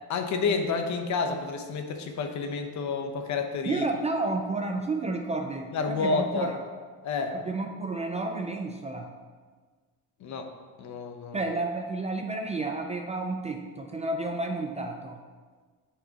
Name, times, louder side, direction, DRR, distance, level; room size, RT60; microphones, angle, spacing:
voice 1, 0.1-3.9 5.7-6.5 7.0-7.4 10.2-10.5 10.8-11.4, left 4 dB, 50° left, 6 dB, 0.8 m, -29 dB
voice 2, 3.6-6.6 7.3-9.1 11.3-15.2, right 2 dB, 20° right, 3 dB, 0.3 m, -31 dB
11.0 x 4.7 x 2.9 m, 1.5 s
cardioid pair, 130°, 36 cm